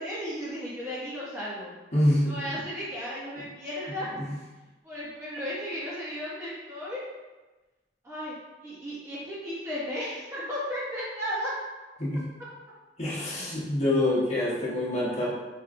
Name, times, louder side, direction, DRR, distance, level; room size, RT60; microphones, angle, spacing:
voice 1, 0.0-1.7 2.2-4.1 4.8-7.0 8.0-8.3 8.6-11.5, equal, 15° right, -10 dB, 0.7 m, -34 dB
voice 2, 1.9-2.3 4.2-4.3 12.0-12.2 13.0-15.3, left 1 dB, 40° left, -6 dB, 1.1 m, -26 dB
5.0 x 3.1 x 2.5 m, 1.2 s
head